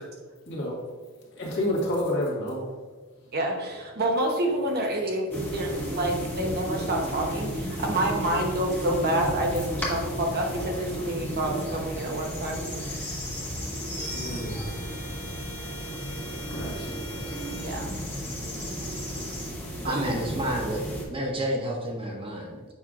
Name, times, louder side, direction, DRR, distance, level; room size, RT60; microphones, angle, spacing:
voice 1, 1.3-2.7 14.1-14.7 16.5-16.9, left 1 dB, 55° left, -4 dB, 1.7 m, -29 dB
voice 2, 3.3-13.1 17.6-17.9 19.8-20.3, right 1 dB, 45° right, 1 dB, 0.9 m, -28 dB
sound 1, 5.3-21.0, equal, 10° left, 1.3 m, -33 dB
voice 3, 19.9-20.8 21.1-22.7, right 1 dB, 25° right, 0 dB, 0.7 m, -30 dB
7.1 x 5.5 x 2.5 m, 1.4 s
head